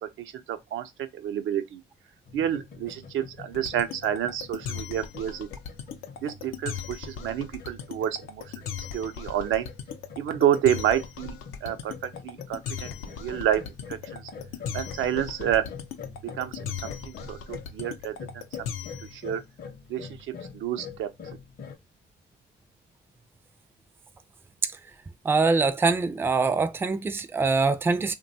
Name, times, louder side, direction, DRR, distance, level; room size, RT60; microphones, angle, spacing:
voice 1, 0.0-1.8 2.3-5.5 6.2-9.7 10.2-13.6 13.9-14.3 14.7-15.7 16.2-18.4 19.0-19.4 19.9-20.1 20.5-21.1, right 10 dB, 80° right, 0.5 m, -29 dB
sound 1, 2.3-21.8, left 5 dB, 50° left, 0.6 m, -44 dB
sound 2, 3.5-19.2, left 8 dB, 90° left, 0.5 m, -37 dB
voice 2, 25.2-28.1, right 4 dB, 10° right, 0.3 m, -23 dB
3.0 x 2.2 x 2.6 m
cardioid pair, 90°, 20 cm